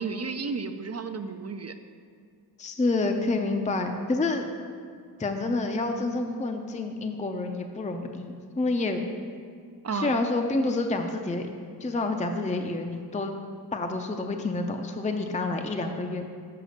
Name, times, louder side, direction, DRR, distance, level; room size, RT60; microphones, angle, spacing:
voice 1, 0.0-1.7 9.8-10.1, right 4 dB, 40° right, 8 dB, 0.5 m, -32 dB
voice 2, 2.6-4.4 5.2-9.0 9.9-11.5 11.8-13.3 13.7-16.3, left 2 dB, 20° left, 4 dB, 0.5 m, -28 dB
6.7 x 5.1 x 6.4 m, 2.2 s
wide cardioid pair, 70°, 39 cm